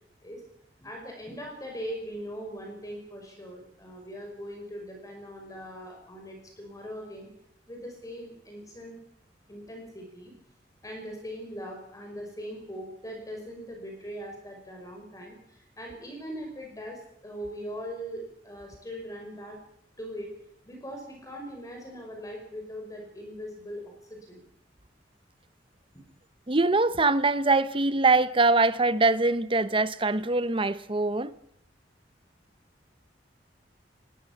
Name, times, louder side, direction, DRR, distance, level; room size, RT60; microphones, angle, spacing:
voice 1, 0.8-7.3 7.7-9.0 9.5-10.3 10.8-19.6 20.0-20.3 20.7-24.4 25.9-26.0, equal, 20° left, 5.5 m, -40 dB
voice 2, 26.5-31.3, right 3 dB, 30° right, 1.0 m, -23 dB
22.5 x 18.5 x 7.4 m
head